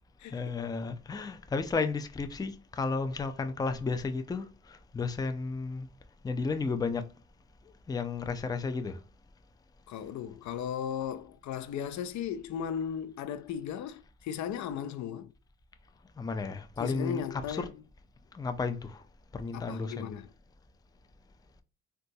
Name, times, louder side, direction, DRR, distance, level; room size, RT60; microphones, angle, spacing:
voice 1, 0.3-5.9 6.2-7.1 7.9-9.0 16.2-17.7 18.3-19.0 19.3-20.1, left 4 dB, 15° left, 0.4 m, -33 dB
voice 2, 9.9-15.3 16.8-17.7 19.5-20.3, left 8 dB, 70° left, 0.5 m, -36 dB
3.7 x 2.3 x 2.6 m
cardioid pair, 90°, 30 cm